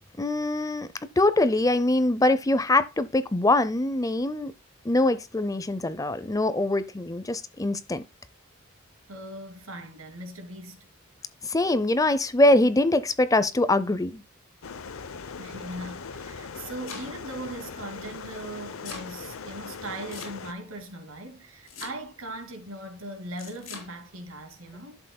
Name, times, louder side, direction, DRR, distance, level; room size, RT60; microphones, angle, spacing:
voice 1, 0.2-0.9 1.2-4.5 4.8-8.0 11.4-14.2, left 2 dB, 15° left, 0.6 m, -23 dB
voice 2, 9.1-10.9 15.4-25.0, right 1 dB, 85° right, 2.5 m, -39 dB
sound 1, 14.6-20.5, left 5 dB, 85° left, 0.8 m, -40 dB
Domestic sounds home sounds, 16.5-17.4 18.4-19.1 20.1-20.7 21.7-22.3 23.4-23.9, left 5 dB, 65° left, 3.8 m, -42 dB
11.5 x 7.8 x 2.2 m
head